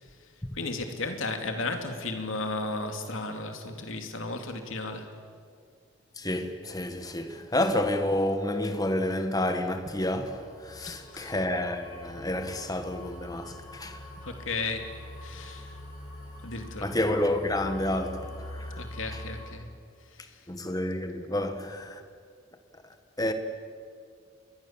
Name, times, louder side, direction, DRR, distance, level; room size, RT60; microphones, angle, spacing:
voice 1, 0.5-5.1 10.8-11.3 14.2-14.9 15.2-15.7 16.4-16.9 18.8-19.7, left 3 dB, 65° left, 2.8 m, -34 dB
voice 2, 6.2-14.0 16.8-18.8 19.1-19.2 20.5-22.0 23.2-23.3, left 1 dB, 15° left, 1.6 m, -29 dB
sound 1, 10.0-19.4, left 1 dB, 40° left, 7.7 m, -44 dB
29.0 x 22.5 x 7.5 m
head